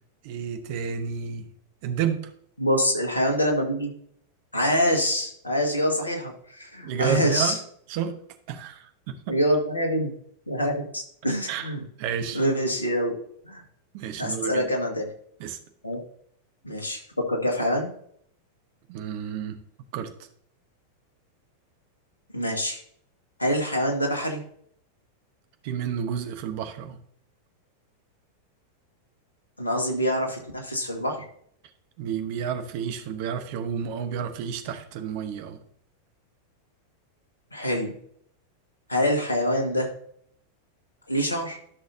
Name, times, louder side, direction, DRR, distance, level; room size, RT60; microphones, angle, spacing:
voice 1, 0.2-1.5 1.8-2.3 6.8-7.6 7.9-8.1 8.5-9.4 11.5-11.7 12.0-12.4 13.9-14.7 15.4-15.6 18.9-19.6 19.9-20.1 25.6-27.0 32.0-35.6, right 8 dB, 45° right, 1.0 m, -30 dB
voice 2, 2.6-3.9 4.5-7.6 9.3-10.1 10.5-11.8 12.3-13.1 13.4-13.6 14.2-15.1 15.8-16.0 16.6-17.9 22.3-22.8 23.4-24.4 29.6-31.2 37.5-38.0 38.9-39.9 41.1-41.6, equal, 80° left, 1.9 m, -25 dB
13.5 x 6.3 x 2.8 m
figure-of-eight pair, 90°, 0 cm